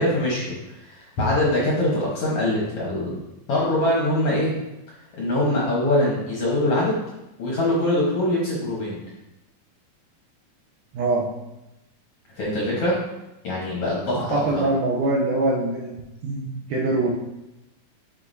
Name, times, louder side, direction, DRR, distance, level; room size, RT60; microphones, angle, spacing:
voice 1, 0.0-3.1 3.5-4.5 5.2-7.0 7.4-9.0 12.4-13.0 13.4-14.4, left 1 dB, 60° left, -5 dB, 1.5 m, -23 dB
voice 2, 10.9-11.3 14.2-17.1, right 2 dB, 80° right, -3 dB, 1.8 m, -24 dB
9.5 x 4.6 x 2.7 m, 0.94 s
omnidirectional pair, 4.3 m